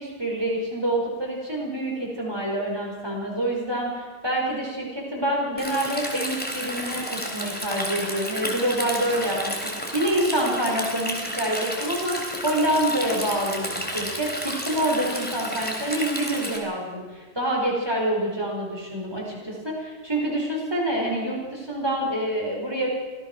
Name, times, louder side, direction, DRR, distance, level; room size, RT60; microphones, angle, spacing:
voice 1, 0.0-22.9, right 1 dB, 20° right, -2 dB, 5.2 m, -27 dB
Stream, 5.6-16.6, equal, 10° left, 3.5 m, -32 dB
25.5 x 17.0 x 6.2 m, 1.3 s
omnidirectional pair, 1.2 m